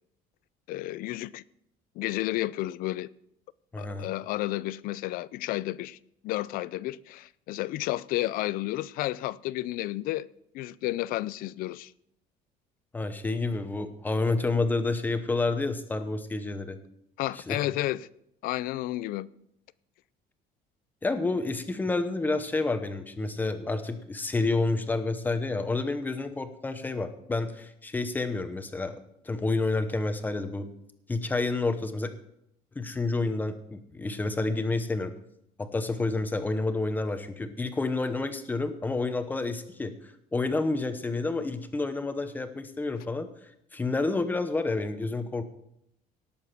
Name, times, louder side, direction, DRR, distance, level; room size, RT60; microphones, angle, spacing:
voice 1, 0.7-1.4 2.0-3.1 3.8-6.0 6.2-10.3 10.5-11.9 17.2-18.1 18.4-19.3 43.0-43.1, left 16 dB, 60° left, 0.5 m, -31 dB
voice 2, 3.7-4.1 12.9-16.8 17.3-17.6 21.0-29.0 29.2-30.7 31.1-32.1 32.7-35.1 35.6-43.3 43.7-45.4, left 3 dB, 10° left, 0.9 m, -29 dB
18.0 x 7.2 x 6.0 m
cardioid pair, 170°, 16 cm